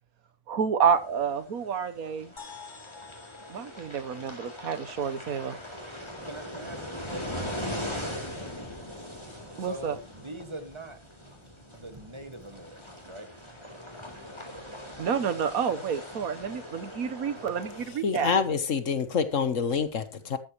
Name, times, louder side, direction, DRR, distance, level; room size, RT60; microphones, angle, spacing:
voice 1, 0.5-2.3 3.5-5.6 5.9-6.0 9.6-9.9 15.0-18.3, right 7 dB, 90° right, 1.6 m, -29 dB
sound 1, 0.8-17.8, left 1 dB, 20° left, 4.0 m, -41 dB
sound 2, 2.4-6.1, left 5 dB, 35° left, 1.8 m, -50 dB
voice 2, 6.0-18.0, right 1 dB, 20° right, 1.9 m, -46 dB
voice 3, 17.9-20.4, left 6 dB, 65° left, 1.5 m, -27 dB
13.5 x 13.0 x 3.1 m
omnidirectional pair, 1.5 m